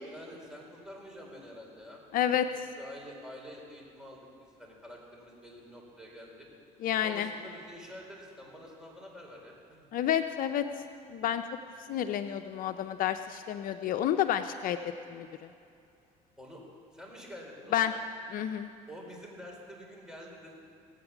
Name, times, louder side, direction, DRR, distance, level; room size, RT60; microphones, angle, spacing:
voice 1, 0.0-2.0 2.4-2.5 2.7-4.3 4.6-6.5 7.0-9.8 16.4-16.6 16.9-18.0 18.9-20.5, equal, 5° right, -2 dB, 4.4 m, -47 dB
voice 2, 2.1-2.5 6.8-7.3 9.9-10.6 11.1-11.4 11.9-14.8 15.1-15.3 17.7-17.9 18.3-18.7, left 10 dB, 60° left, 8 dB, 0.6 m, -29 dB
17.5 x 8.8 x 7.1 m, 2.5 s
supercardioid pair, 90°, 16 cm